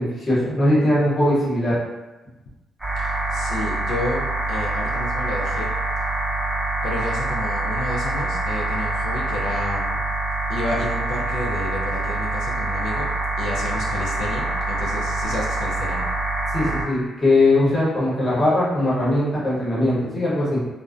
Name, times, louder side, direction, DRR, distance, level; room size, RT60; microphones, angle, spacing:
voice 1, 0.0-1.7 16.5-20.6, left 1 dB, 25° left, -8 dB, 0.8 m, -20 dB
sound 1, 2.8-16.8, right 2 dB, 5° right, 0.6 m, -25 dB
voice 2, 3.0-4.2 4.5-5.7 6.8-10.0 10.5-13.1 13.4-16.1, left 2 dB, 85° left, -3 dB, 0.4 m, -30 dB
2.5 x 2.0 x 2.4 m, 1.1 s
cardioid pair, 150°, 0 cm